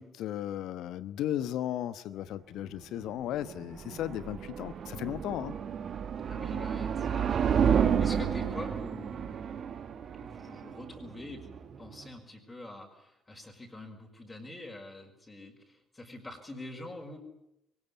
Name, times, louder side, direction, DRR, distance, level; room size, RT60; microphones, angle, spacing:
voice 1, 0.0-5.5, left 11 dB, 65° left, 14 dB, 1.1 m, -35 dB
sound 1, 3.1-12.1, right 7 dB, 50° right, 1.7 m, -31 dB
voice 2, 6.2-9.4 10.2-17.2, left 2 dB, 20° left, 1 dB, 5.6 m, -45 dB
22.5 x 19.5 x 9.8 m, 0.87 s
hypercardioid pair, 50°, 0 cm